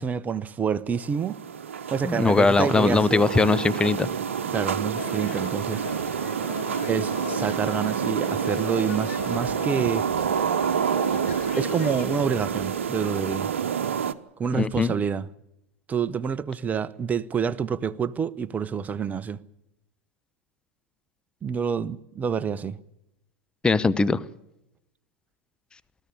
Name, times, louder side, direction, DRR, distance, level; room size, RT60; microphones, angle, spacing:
voice 1, 0.0-1.4 1.9-3.2 4.5-5.9 6.9-10.1 11.6-13.5 14.4-15.3 15.9-19.4 21.4-22.8, right 7 dB, 20° right, 0.9 m, -27 dB
sound 1, 0.9-14.1, right 7 dB, 70° right, 1.0 m, -28 dB
voice 2, 2.0-4.1 14.5-14.9 23.6-24.2, left 4 dB, 10° left, 0.8 m, -21 dB
sound 2, 5.0-12.1, left 9 dB, 75° left, 1.3 m, -39 dB
20.5 x 14.0 x 9.8 m
figure-of-eight pair, 85°, 7 cm